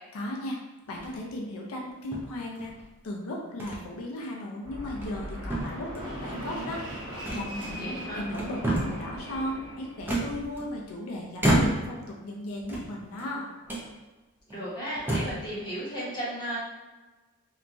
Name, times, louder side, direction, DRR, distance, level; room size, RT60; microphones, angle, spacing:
voice 1, 0.1-0.6 0.9-2.7 3.0-6.8 7.3-13.5, left 1 dB, 85° left, -1 dB, 0.4 m, -36 dB
sound 1, 0.9-1.3 2.1-2.9 3.6-3.8 4.2-4.4 4.9-5.2 5.5-6.2 7.2-8.0 8.3-9.1 10.1-10.9 11.4-12.0 12.6-13.3 13.7-13.9 14.5-14.6 15.0-15.5, right 1 dB, 10° right, 0.4 m, -30 dB
Fixed-wing aircraft airplane, 4.6-10.3, equal, 85° right, 0.9 m, -39 dB
voice 2, 7.8-8.2 14.5-16.6, equal, 20° left, -8 dB, 0.9 m, -34 dB
2.8 x 2.3 x 2.5 m, 1.2 s
head